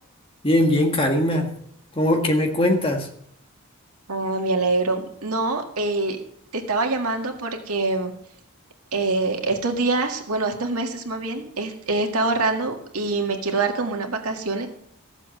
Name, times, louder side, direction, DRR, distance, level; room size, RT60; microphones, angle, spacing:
voice 1, 0.4-1.5 1.9-3.1, left 1 dB, 25° left, 3 dB, 1.6 m, -20 dB
voice 2, 4.1-6.2 6.5-8.1 8.9-14.7, right 3 dB, 85° right, 3 dB, 1.9 m, -25 dB
14.5 x 7.4 x 6.5 m, 0.70 s
head